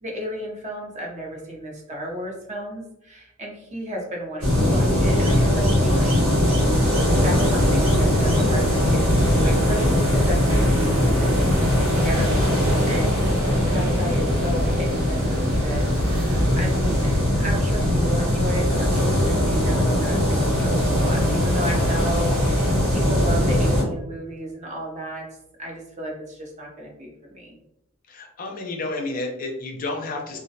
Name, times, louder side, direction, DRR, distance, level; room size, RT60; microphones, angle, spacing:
voice 1, 0.0-11.3 11.9-12.5 12.8-13.2 13.7-25.2 25.6-27.6, equal, 35° right, -1 dB, 0.5 m, -33 dB
sound 1, 4.4-23.8, left 1 dB, 85° right, 1.3 m, -20 dB
sound 2, 9.0-17.2, equal, 65° right, 0.8 m, -28 dB
voice 2, 28.1-30.4, left 2 dB, 40° left, 2 dB, 0.4 m, -30 dB
2.2 x 2.1 x 2.6 m, 0.84 s
head